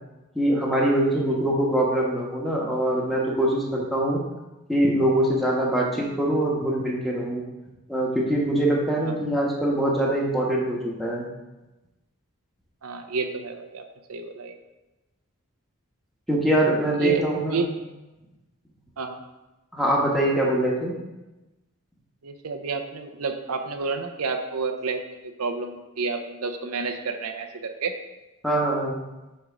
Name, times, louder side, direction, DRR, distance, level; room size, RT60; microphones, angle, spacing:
voice 1, 0.3-4.2 4.7-7.4 7.9-11.2 16.3-17.6 19.7-20.9 28.4-28.9, right 1 dB, ahead, -3 dB, 1.1 m, -23 dB
voice 2, 12.8-13.8 14.1-14.6 17.0-17.7 19.0-19.2 22.2-28.0, right 4 dB, 85° right, 6 dB, 0.7 m, -30 dB
8.6 x 3.5 x 4.9 m, 1.1 s
head